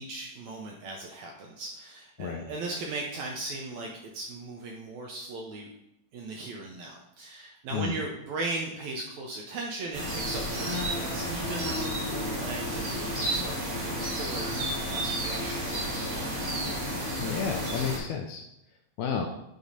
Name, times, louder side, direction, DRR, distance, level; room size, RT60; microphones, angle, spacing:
voice 1, 0.0-5.7 6.1-16.3, right 3 dB, 80° right, 0 dB, 1.6 m, -38 dB
sound 1, 9.9-18.0, equal, 55° right, 0.7 m, -31 dB
voice 2, 17.2-18.4 19.0-19.3, left 6 dB, 80° left, 3 dB, 1.9 m, -31 dB
7.9 x 2.7 x 5.0 m, 0.84 s
omnidirectional pair, 3.9 m